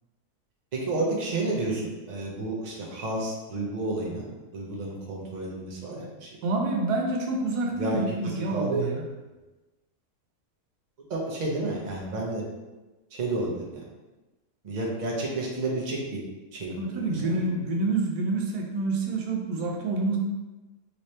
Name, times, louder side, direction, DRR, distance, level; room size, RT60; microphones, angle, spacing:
voice 1, 0.7-4.3 4.5-6.3 7.8-8.2 8.5-8.9 11.1-12.4 13.1-13.6 14.6-16.2 16.5-16.8 17.0-17.3, right 2 dB, 55° right, -3 dB, 0.5 m, -30 dB
voice 2, 6.4-9.0 16.8-20.2, right 3 dB, 90° right, 0 dB, 1.2 m, -27 dB
3.2 x 3.2 x 2.8 m, 1.1 s
omnidirectional pair, 1.7 m